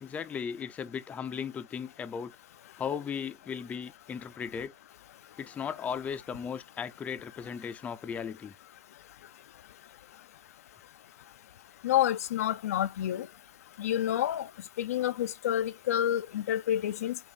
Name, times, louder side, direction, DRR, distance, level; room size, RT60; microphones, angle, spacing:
voice 1, 0.0-2.3 2.8-4.7 5.4-8.5, left 7 dB, 20° left, 0.5 m, -36 dB
voice 2, 11.8-13.3 13.8-14.5 14.8-17.2, left 11 dB, 85° left, 0.4 m, -28 dB
5.4 x 2.4 x 4.0 m
supercardioid pair, 135°, 8 cm